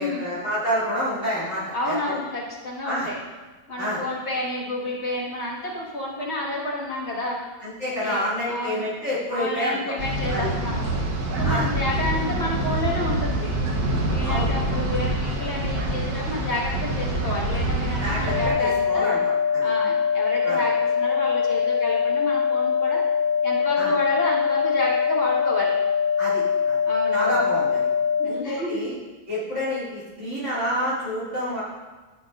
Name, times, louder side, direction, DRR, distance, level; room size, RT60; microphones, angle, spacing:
voice 1, 0.0-2.2 2.8-3.1 3.8-4.0 7.6-10.0 10.3-10.5 11.4-11.7 14.2-14.5 18.0-19.6 20.4-20.6 23.8-23.9 26.2-26.8 27.1-27.8 28.2-28.9 29.3-31.6, equal, 50° right, -11 dB, 3.1 m, -28 dB
voice 2, 1.7-3.2 3.7-7.4 8.0-8.2 8.5-8.9 9.3-10.9 11.4-13.6 14.1-19.2 19.6-23.0 23.4-25.7 26.9-27.3 28.2-28.8, left 1 dB, 45° left, -5 dB, 2.0 m, -30 dB
sound 1, 10.0-18.5, right 1 dB, 80° right, 1.6 m, -26 dB
sound 2, 18.3-28.3, left 6 dB, 80° left, 1.7 m, -23 dB
14.0 x 6.0 x 2.5 m, 1.3 s
omnidirectional pair, 1.6 m